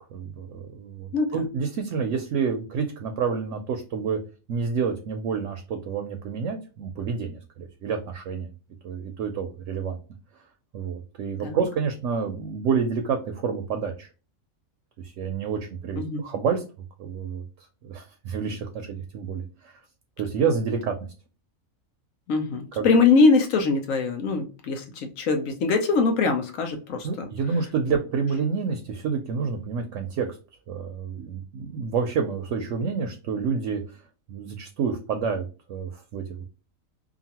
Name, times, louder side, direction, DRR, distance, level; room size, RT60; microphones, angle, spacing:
voice 1, 0.1-4.2 4.5-8.5 8.8-10.0 10.7-14.1 15.0-16.6 17.0-17.4 17.8-19.7 20.2-21.1 22.8-22.9 27.0-30.3 30.7-34.0 34.3-36.5, right 6 dB, 70° right, 6 dB, 0.9 m, -28 dB
voice 2, 22.3-27.3, left 4 dB, 75° left, 4 dB, 1.1 m, -22 dB
2.9 x 2.5 x 2.7 m, 0.34 s
omnidirectional pair, 1.4 m